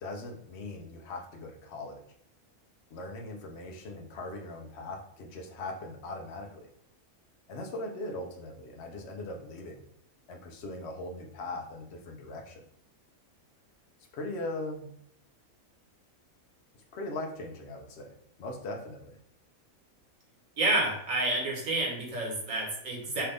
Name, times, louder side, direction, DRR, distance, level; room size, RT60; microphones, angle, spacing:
voice 1, 0.0-2.0 2.9-6.7 7.5-9.8 10.3-12.7 14.1-14.9 16.9-19.2, left 2 dB, 55° left, 2 dB, 1.0 m, -40 dB
voice 2, 20.6-23.2, right 2 dB, 65° right, -1 dB, 1.6 m, -29 dB
5.6 x 2.6 x 3.4 m, 0.69 s
omnidirectional pair, 1.5 m